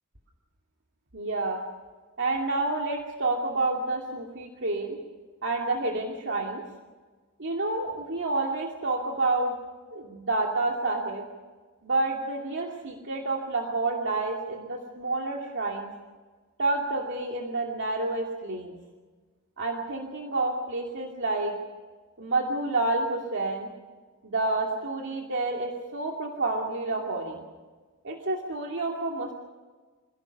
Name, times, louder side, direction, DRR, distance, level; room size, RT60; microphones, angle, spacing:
voice 1, 1.1-1.6 2.2-5.0 5.4-6.6 7.4-9.5 9.9-11.2 11.8-15.9 16.6-18.8 19.6-21.6 22.2-23.7 24.2-27.4 28.0-29.3, right 2 dB, 60° right, 0 dB, 2.6 m, -29 dB
27.5 x 16.5 x 6.9 m, 1.4 s
head